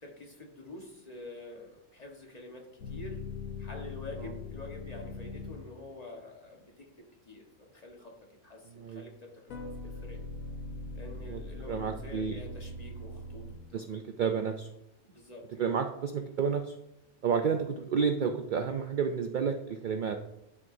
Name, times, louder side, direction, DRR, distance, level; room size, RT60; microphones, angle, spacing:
voice 1, 0.0-3.2 3.6-8.1 8.4-10.2 10.9-13.8 15.0-15.6, left 2 dB, 30° left, 0 dB, 1.4 m, -47 dB
sound 1, 2.8-5.9 9.5-14.1, left 3 dB, 90° left, 1.4 m, -41 dB
voice 2, 8.7-9.0 11.3-11.4 11.7-12.4 13.7-14.7 15.6-16.7 17.2-20.2, right 6 dB, 75° right, 6 dB, 0.4 m, -31 dB
10.5 x 6.0 x 2.7 m, 0.88 s
omnidirectional pair, 1.4 m